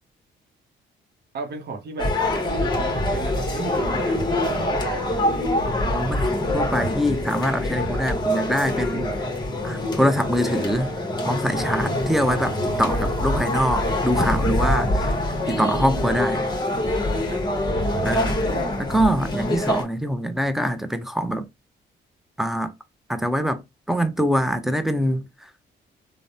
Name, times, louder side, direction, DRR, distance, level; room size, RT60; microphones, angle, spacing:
voice 1, 1.3-2.2 2.6-5.4 8.9-9.2 14.7-14.9 17.3-17.6, right 4 dB, 55° right, 0.8 m, -35 dB
sound 1, 2.0-19.8, left 1 dB, 20° left, 0.9 m, -24 dB
voice 2, 5.7-9.0 9.6-10.9 11.2-15.1 15.5-16.4 18.0-18.5 18.8-21.5 22.4-22.7 23.1-23.6 23.9-25.3, equal, ahead, 0.4 m, -24 dB
3.3 x 2.0 x 2.6 m
cardioid pair, 90°, 20 cm